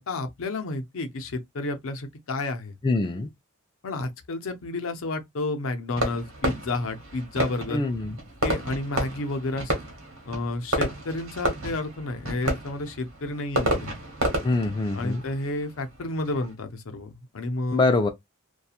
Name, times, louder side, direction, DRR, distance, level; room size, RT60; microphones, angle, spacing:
voice 1, 0.0-2.7 3.8-7.8 8.4-9.7 10.3-13.9 14.9-17.9, left 2 dB, 70° left, 0.6 m, -31 dB
voice 2, 2.8-3.3 7.7-8.1 14.4-15.2 17.7-18.1, left 3 dB, 20° left, 0.3 m, -24 dB
Fireworks, 6.0-16.5, right 1 dB, 80° right, 1.2 m, -31 dB
2.8 x 2.3 x 2.3 m
head